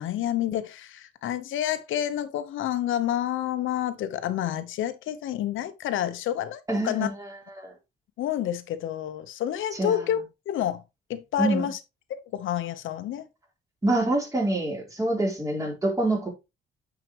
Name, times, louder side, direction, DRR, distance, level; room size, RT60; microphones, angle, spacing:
voice 1, 0.0-7.1 8.2-10.8 11.1-11.8 12.1-13.3, left 11 dB, 80° left, 1.0 m, -29 dB
voice 2, 6.7-7.3 7.6-7.7 9.7-10.1 11.4-11.7 13.8-16.3, right 2 dB, 15° right, 3.8 m, -26 dB
9.2 x 5.0 x 3.1 m
cardioid pair, 90°, 20 cm